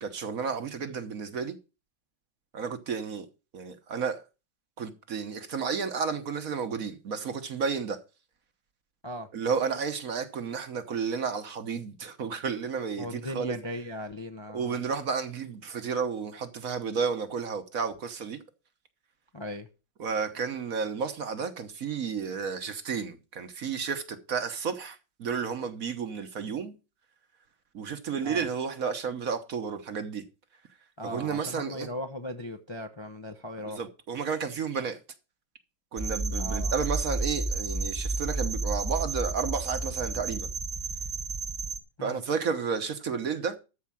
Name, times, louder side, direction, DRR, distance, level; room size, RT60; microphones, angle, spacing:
voice 1, 0.0-1.6 2.5-3.3 3.5-4.2 4.8-8.0 9.3-13.6 14.5-18.4 20.0-26.8 27.7-30.2 31.0-31.9 33.6-35.0 35.9-40.5 42.0-43.6, right 6 dB, 55° right, 1.4 m, -32 dB
voice 2, 13.0-14.8 19.3-19.7 28.2-28.5 31.0-33.8 36.4-36.7 42.0-42.2, left 1 dB, 25° left, 0.7 m, -38 dB
sound 1, 36.0-41.8, right 3 dB, 15° right, 1.0 m, -31 dB
13.5 x 4.8 x 7.4 m
omnidirectional pair, 1.9 m